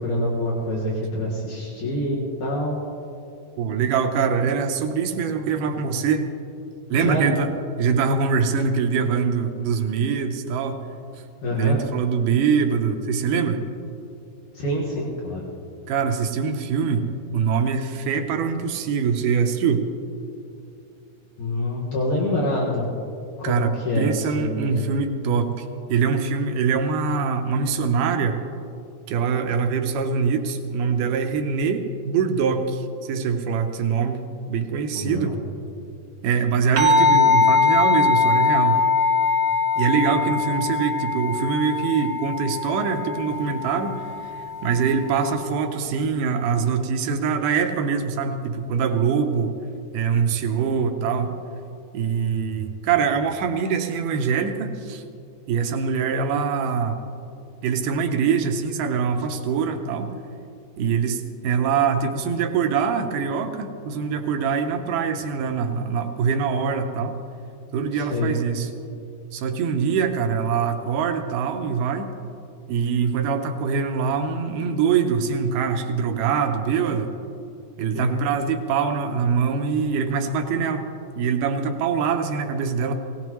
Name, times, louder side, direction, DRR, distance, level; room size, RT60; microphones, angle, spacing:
voice 1, 0.0-2.8 7.0-7.3 11.4-11.8 14.5-15.4 21.4-22.8 23.4-24.8 34.9-35.3 67.9-68.3 77.9-78.2, left 1 dB, 75° left, -5 dB, 3.2 m, -26 dB
voice 2, 3.6-6.3 6.9-7.5 7.8-10.8 11.5-13.6 15.9-19.9 23.4-28.4 29.1-35.3 36.2-38.8 39.8-49.5 49.9-51.4 51.9-55.0 55.5-57.0 57.6-60.1 60.8-67.2 67.7-68.7 69.3-72.1 72.7-77.1 77.8-80.9 81.2-82.9, right 6 dB, 85° right, 5 dB, 2.4 m, -23 dB
sound 1, 36.8-45.5, left 4 dB, 45° right, 1.6 m, -22 dB
18.5 x 18.5 x 3.1 m, 2.6 s
omnidirectional pair, 3.6 m